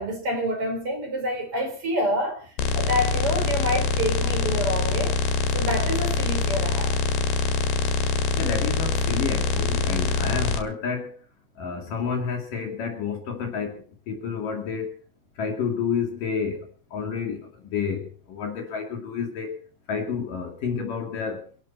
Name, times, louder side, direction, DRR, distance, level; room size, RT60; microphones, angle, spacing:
voice 1, 0.0-2.4 2.7-5.1 5.5-6.9, equal, 30° right, 4.9 m, -27 dB
sound 1, 2.6-10.6, left 4 dB, 70° left, 4.1 m, -24 dB
voice 2, 8.4-11.1 11.6-13.8 14.1-14.9 15.4-16.6 16.9-19.6 19.9-21.4, left 6 dB, 55° left, 3.7 m, -29 dB
26.5 x 12.0 x 4.4 m
omnidirectional pair, 5.1 m